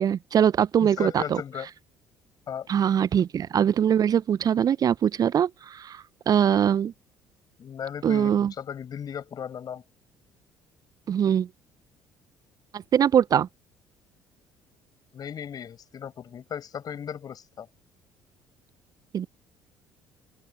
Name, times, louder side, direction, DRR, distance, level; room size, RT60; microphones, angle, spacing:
voice 1, 0.0-1.4 2.7-6.9 8.0-8.5 11.1-11.5 12.7-13.5 19.1-19.3, right 9 dB, 40° right, 0.8 m, -22 dB
voice 2, 0.8-1.7 2.5-2.7 7.6-9.8 15.1-17.7, left 8 dB, 40° left, 5.4 m, -36 dB
open air
figure-of-eight pair, 50°, 10 cm